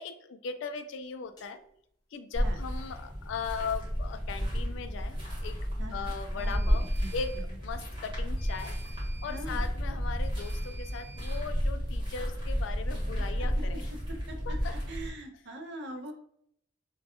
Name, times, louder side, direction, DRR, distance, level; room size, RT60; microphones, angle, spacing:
voice 1, 0.0-1.6 2.1-5.2 5.4-5.6 5.9-8.7 9.2-13.9 14.4-14.8 15.9-16.0, left 5 dB, 65° left, 8 dB, 0.3 m, -38 dB
sound 1, 1.4-1.5 6.4-7.5 8.4-9.5 10.4-11.5, right 4 dB, 20° left, 0.6 m, -52 dB
sound 2, 2.3-15.1, equal, 25° right, 1.0 m, -32 dB
voice 2, 5.8-7.1 9.2-9.7 13.2-16.1, right 1 dB, 55° right, 4 dB, 0.5 m, -43 dB
2.3 x 2.1 x 2.8 m, 0.69 s
head